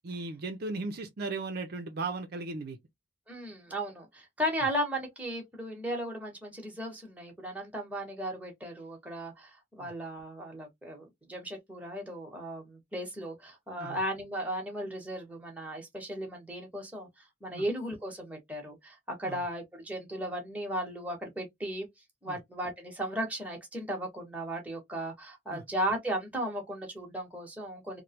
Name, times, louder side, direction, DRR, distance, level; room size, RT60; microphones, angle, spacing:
voice 1, 0.0-2.8 9.8-9.9 13.8-14.0 17.5-17.6 19.3-19.4 22.3-22.4 25.5-25.6, right 3 dB, 55° right, 0.5 m, -36 dB
voice 2, 3.3-21.9 22.2-28.0, equal, 10° right, 1.1 m, -36 dB
3.1 x 2.1 x 2.8 m
head